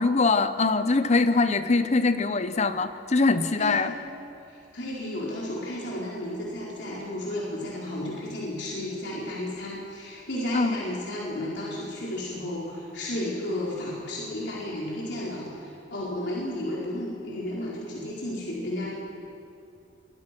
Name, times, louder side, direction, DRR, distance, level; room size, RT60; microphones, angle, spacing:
voice 1, 0.0-3.9 10.5-10.8, left 3 dB, 35° left, 11 dB, 0.8 m, -23 dB
voice 2, 4.5-18.9, left 1 dB, 65° left, -5 dB, 4.5 m, -33 dB
27.5 x 23.0 x 6.1 m, 2.5 s
head